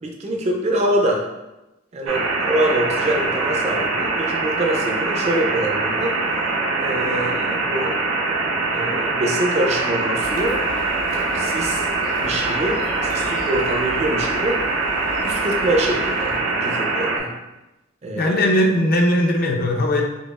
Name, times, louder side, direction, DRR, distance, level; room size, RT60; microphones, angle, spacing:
voice 1, 0.0-1.2 1.9-6.2 6.8-8.0 8.7-10.6 11.3-11.9 12.2-14.7 15.2-17.3 18.0-18.4, right 1 dB, 30° right, 1 dB, 0.4 m, -24 dB
sound 1, 2.1-17.2, right 3 dB, 80° right, 0.6 m, -23 dB
sound 2, 10.2-16.4, left 1 dB, 85° left, 0.7 m, -40 dB
voice 2, 18.2-20.0, left 1 dB, 45° left, 1 dB, 0.5 m, -18 dB
5.0 x 2.3 x 2.3 m, 1.0 s
head